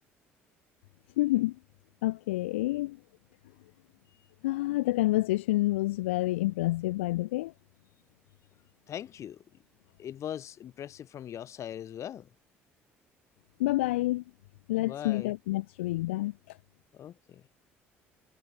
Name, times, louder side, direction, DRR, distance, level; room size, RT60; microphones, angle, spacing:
voice 1, 1.2-1.6 2.0-3.0 4.4-7.5 13.6-14.2 14.7-16.6, left 18 dB, 70° left, 0.7 m, -28 dB
voice 2, 8.9-9.4 10.0-12.2 14.8-15.3 17.0-17.1, left 10 dB, 45° left, 3.3 m, -40 dB
figure-of-eight pair, 55°, 7 cm